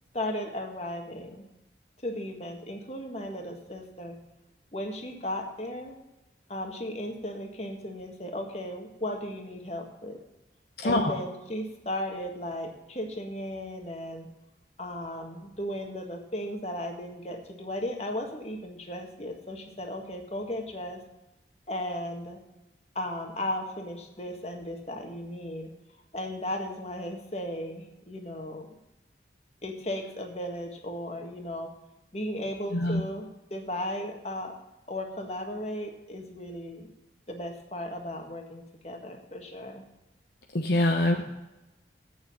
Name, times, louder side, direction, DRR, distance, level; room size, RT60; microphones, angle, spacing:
voice 1, 0.1-1.4 2.0-4.2 4.7-6.0 6.5-10.2 10.8-14.3 14.8-21.0 21.7-22.4 23.0-25.7 26.1-28.7 29.6-31.7 32.1-34.5 34.9-36.9 37.3-39.8, left 1 dB, 35° left, 3 dB, 1.7 m, -36 dB
voice 2, 40.5-41.3, left 1 dB, 60° left, 2 dB, 0.9 m, -24 dB
8.5 x 7.1 x 8.7 m, 0.98 s
head